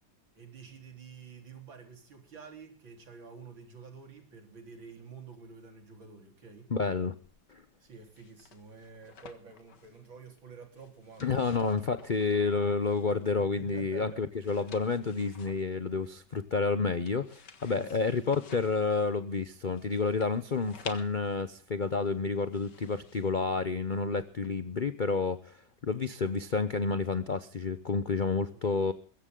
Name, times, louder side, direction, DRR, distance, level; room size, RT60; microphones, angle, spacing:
voice 1, 0.3-6.7 7.8-11.8 13.4-14.7 17.7-18.4 28.5-28.7, right 5 dB, 75° right, 4 dB, 4.7 m, -49 dB
voice 2, 6.7-7.1 7.5-7.6 11.2-28.9, left 4 dB, 75° left, 12 dB, 0.4 m, -30 dB
sound 1, 7.2-24.5, left 6 dB, 60° left, 2.1 m, -54 dB
22.0 x 15.0 x 3.8 m, 0.41 s
omnidirectional pair, 2.1 m